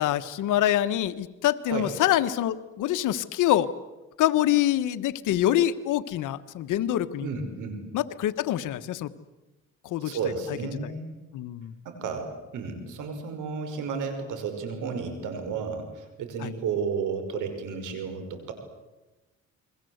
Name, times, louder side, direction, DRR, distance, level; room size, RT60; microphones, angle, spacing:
voice 1, 0.0-3.7 4.2-7.3 7.9-9.1 9.8-10.2 10.8-10.9 11.3-11.7 16.4-16.5, left 12 dB, 85° left, 11 dB, 1.4 m, -25 dB
voice 2, 7.2-7.8 10.0-11.1 11.8-18.5, right 5 dB, 85° right, 7 dB, 5.8 m, -32 dB
30.0 x 22.0 x 8.1 m, 1.1 s
cardioid pair, 90°, 30 cm